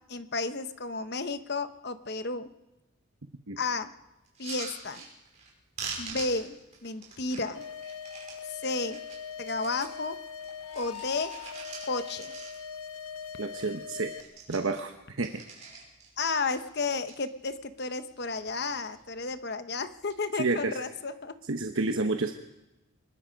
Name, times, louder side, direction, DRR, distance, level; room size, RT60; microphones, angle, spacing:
voice 1, 0.1-2.4 3.6-3.9 4.4-5.0 6.0-6.6 6.8-7.6 8.5-9.0 9.4-10.2 10.7-11.3 11.9-12.3 16.2-21.3, left 3 dB, 50° left, 10 dB, 1.0 m, -32 dB
sound 1, 4.3-5.5 5.8-8.4 8.8-10.0 10.4-12.8 13.2-13.3 13.5-13.8 14.1-16.1 16.5-17.2 17.7-18.2 18.5-19.0 19.9-20.2, right 4 dB, 35° right, 5.6 m, -43 dB
sound 2, 7.5-14.2, left 7 dB, 90° left, 1.2 m, -41 dB
voice 2, 13.4-14.1 14.5-14.9 15.2-15.3 20.4-20.8 21.5-22.3, right 3 dB, 70° right, 5 dB, 1.0 m, -29 dB
24.5 x 20.5 x 5.2 m, 0.98 s
head